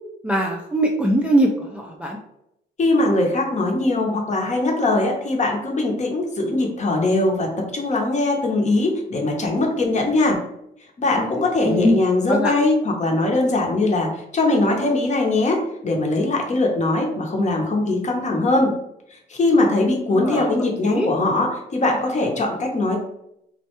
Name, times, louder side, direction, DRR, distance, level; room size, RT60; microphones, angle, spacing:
voice 1, 0.2-2.2 11.6-12.0 12.3-12.5 20.1-20.5 20.8-21.1, right 1 dB, 5° right, 0 dB, 0.3 m, -21 dB
voice 2, 2.8-7.5 7.7-10.4 11.0-18.7 19.1-23.0, left 2 dB, 35° left, 1 dB, 0.7 m, -21 dB
2.1 x 2.1 x 2.9 m, 0.78 s
cardioid pair, 90°, 20 cm